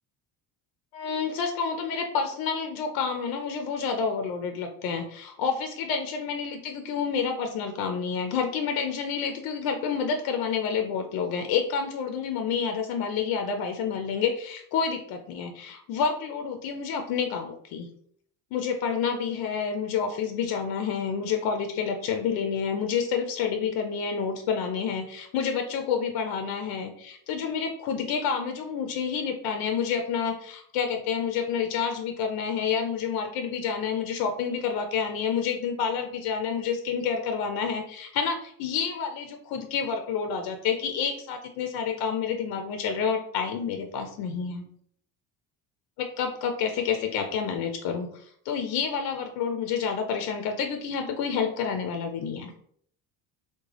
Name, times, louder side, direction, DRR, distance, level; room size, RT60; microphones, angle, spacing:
voice 1, 0.9-17.9 18.5-44.6 46.0-52.5, left 6 dB, 85° left, 5 dB, 0.5 m, -29 dB
3.6 x 2.2 x 3.2 m, 0.63 s
cardioid pair, 170°, 36 cm